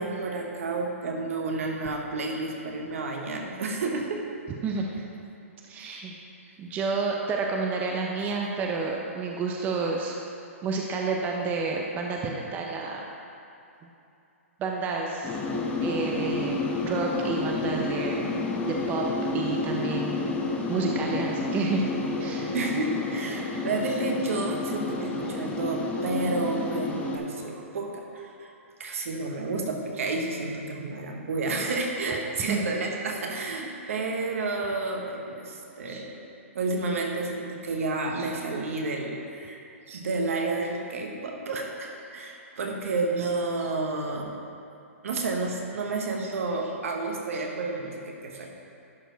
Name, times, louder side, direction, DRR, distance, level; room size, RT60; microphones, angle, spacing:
voice 1, 0.0-4.2 5.8-6.0 8.2-8.4 22.5-28.5 28.8-36.2 36.5-44.3 45.0-48.5, right 3 dB, 70° right, 1 dB, 1.3 m, -31 dB
voice 2, 5.6-6.1 6.6-10.2 10.6-13.1 14.6-15.4 15.8-18.3 18.6-19.1 19.3-20.4 20.7-21.9 22.2-22.5 32.5-32.6, right 4 dB, 20° right, 0 dB, 0.6 m, -30 dB
sound 1, 15.2-27.2, left 3 dB, 20° left, 0.7 m, -30 dB
11.0 x 4.5 x 4.0 m, 2.7 s
hypercardioid pair, 135°, 8 cm